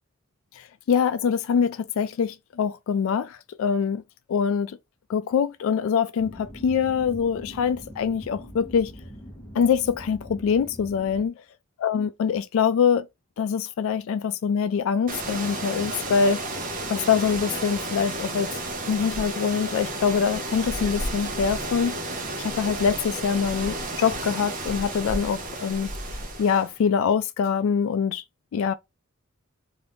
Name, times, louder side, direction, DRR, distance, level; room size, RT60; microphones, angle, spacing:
voice 1, 0.6-4.0 4.3-4.8 5.1-8.9 9.6-11.3 11.8-13.1 13.4-16.4 16.9-18.5 18.8-22.0 22.4-25.9 26.4-28.2 28.5-28.7, left 6 dB, 70° left, 0.3 m, -24 dB
sound 1, 6.2-11.3, equal, 10° left, 0.7 m, -42 dB
sound 2, 15.1-26.8, right 2 dB, 40° right, 0.8 m, -32 dB
2.6 x 2.5 x 3.4 m
head